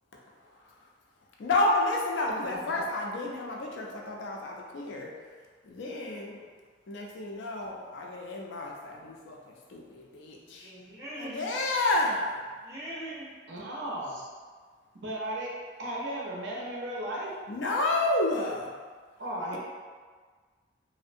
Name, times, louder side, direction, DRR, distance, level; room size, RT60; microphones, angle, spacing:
voice 1, 1.4-5.1 5.6-6.4 6.9-10.7 11.2-12.4 17.5-18.7, left 2 dB, 75° left, 0 dB, 0.4 m, -30 dB
voice 2, 10.3-11.5 12.4-13.3, right 1 dB, 15° right, -7 dB, 0.5 m, -42 dB
voice 3, 13.5-14.3 15.0-15.5 15.8-17.3 19.2-19.6, right 1 dB, 65° right, -4 dB, 0.5 m, -35 dB
2.6 x 2.0 x 2.5 m, 1.5 s
head